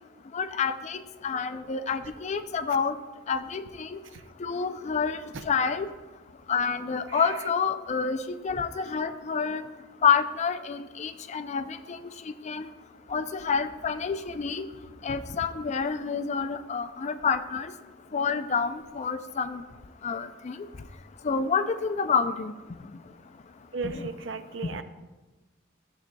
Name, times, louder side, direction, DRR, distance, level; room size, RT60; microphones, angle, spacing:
voice 1, 0.3-1.0 1.2-3.0 3.3-3.9 4.4-5.2 5.4-5.9 6.5-9.6 10.0-12.0 12.4-12.7 13.1-14.6 15.0-17.7 18.1-19.6 20.0-20.6 21.2-22.5 23.8-24.1, left 6 dB, 35° left, 10 dB, 0.4 m, -28 dB
voice 2, 23.7-24.8, right 4 dB, 70° right, 9 dB, 0.5 m, -35 dB
13.0 x 7.1 x 2.3 m, 1.2 s
head